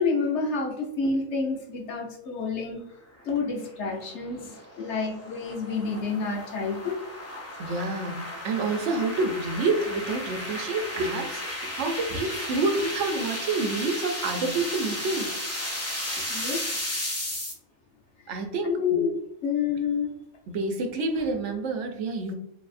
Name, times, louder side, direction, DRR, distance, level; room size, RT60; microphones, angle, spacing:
voice 1, 0.0-2.8 3.2-7.0 7.9-8.0 16.3-16.8 18.6-20.1, left 5 dB, 65° left, 2 dB, 1.0 m, -29 dB
sound 1, 3.6-17.5, left 1 dB, 20° left, 0.4 m, -34 dB
voice 2, 7.6-15.3 18.3-18.8 20.5-22.3, right 3 dB, 70° right, 5 dB, 1.0 m, -28 dB
4.6 x 2.7 x 2.4 m, 0.74 s
omnidirectional pair, 1.4 m